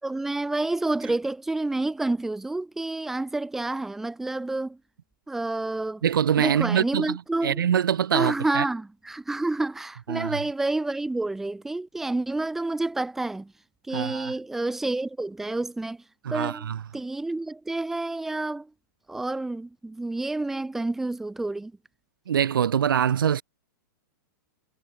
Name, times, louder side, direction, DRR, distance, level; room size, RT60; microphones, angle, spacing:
voice 1, 0.0-4.8 5.3-6.0 6.4-7.6 8.1-13.5 13.9-16.0 16.3-16.7 16.9-18.7 19.1-21.7, right 2 dB, 5° right, 2.8 m, -29 dB
voice 2, 6.0-8.6 10.1-10.4 13.9-14.3 16.2-16.8 22.3-23.4, right 9 dB, 90° right, 2.7 m, -24 dB
hypercardioid pair, 180°, 11 cm